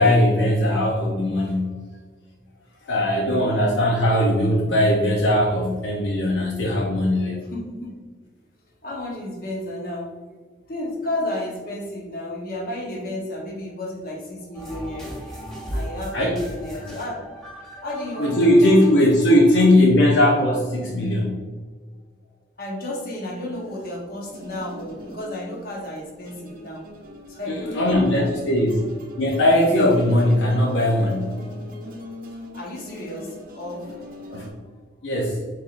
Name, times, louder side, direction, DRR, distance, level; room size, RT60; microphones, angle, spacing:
voice 1, 0.0-1.8 2.8-7.4 16.1-16.4 18.2-21.4 27.5-28.8 29.2-31.4 34.3-34.5 35.0-35.4, left 1 dB, 75° left, -2 dB, 0.7 m, -19 dB
voice 2, 7.5-7.9 8.8-10.1 10.7-15.2 15.7-17.3 17.8-19.0 22.6-26.9 27.3-28.7 32.5-33.9, left 1 dB, 50° left, -2 dB, 1.0 m, -32 dB
sound 1, 14.5-19.7, equal, 5° left, 1.0 m, -36 dB
sound 2, 24.2-34.5, left 1 dB, 45° right, 0.6 m, -42 dB
4.7 x 4.2 x 2.5 m, 1.5 s
head